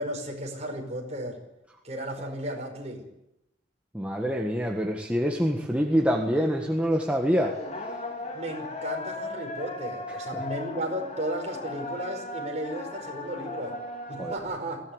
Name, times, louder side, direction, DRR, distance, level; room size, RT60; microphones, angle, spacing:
voice 1, 0.0-1.4 1.8-3.1 8.3-13.8 14.1-14.8, right 1 dB, 35° right, 2 dB, 5.3 m, -34 dB
voice 2, 3.9-7.5 10.1-10.4 14.2-14.3, equal, 5° right, 1 dB, 1.6 m, -26 dB
sound 1, 5.8-14.4, left 2 dB, 35° left, 3.0 m, -37 dB
21.5 x 16.0 x 8.1 m, 0.89 s
head